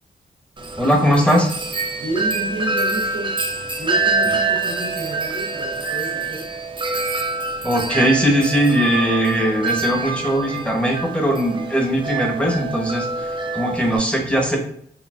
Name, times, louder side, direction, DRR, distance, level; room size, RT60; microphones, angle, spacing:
Wind chime, 0.6-14.0, right 3 dB, 25° right, 0.5 m, -26 dB
voice 1, 0.8-1.5 7.6-14.6, equal, 5° left, 1 dB, 0.9 m, -19 dB
voice 2, 1.9-3.4 3.8-6.4, right 2 dB, 80° right, -6 dB, 1.1 m, -30 dB
3.9 x 2.2 x 2.3 m, 0.64 s
cardioid pair, 65°, 19 cm